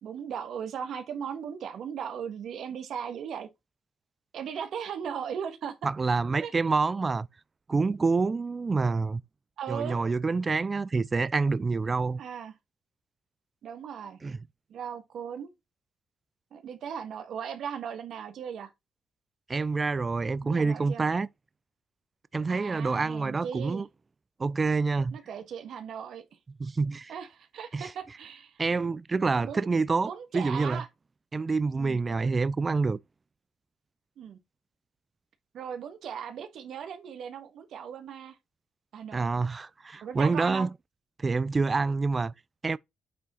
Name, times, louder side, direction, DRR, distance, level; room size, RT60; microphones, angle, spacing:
voice 1, 0.0-3.5 4.3-5.8 6.4-6.5 9.6-10.0 12.2-12.5 13.6-14.2 14.7-15.5 16.5-18.7 20.4-21.0 22.5-23.9 25.1-26.2 27.1-28.6 29.4-29.7 30.0-30.9 31.7-32.0 34.2-34.4 35.5-38.4 38.9-39.2 40.0-40.7, right 8 dB, 70° right, 1.5 m, -37 dB
voice 2, 5.8-7.3 7.7-9.2 9.7-12.2 14.2-14.4 19.5-21.3 22.3-23.9 24.4-25.2 26.6-27.1 27.7-27.9 28.6-30.8 31.3-33.0 39.1-40.7 41.2-42.3 42.6-42.8, right 4 dB, 30° right, 0.4 m, -27 dB
8.5 x 3.6 x 4.3 m
cardioid pair, 90°, 0 cm